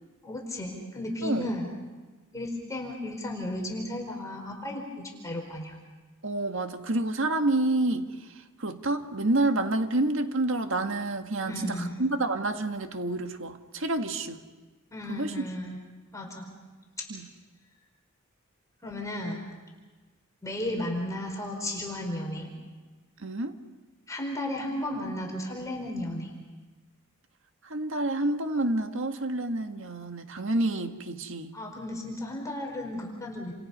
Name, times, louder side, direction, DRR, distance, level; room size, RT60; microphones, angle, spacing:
voice 1, 0.2-1.7 2.3-5.7 11.4-12.0 14.9-15.8 16.1-16.5 18.8-19.5 20.4-22.5 24.1-26.3 31.5-33.5, left 1 dB, 15° left, 0 dB, 4.7 m, -34 dB
voice 2, 6.2-8.1 8.6-14.4 15.1-15.4 17.1-17.3 23.2-23.5 27.7-31.6, right 2 dB, 65° right, 6 dB, 1.8 m, -28 dB
29.5 x 27.5 x 5.6 m, 1.3 s
head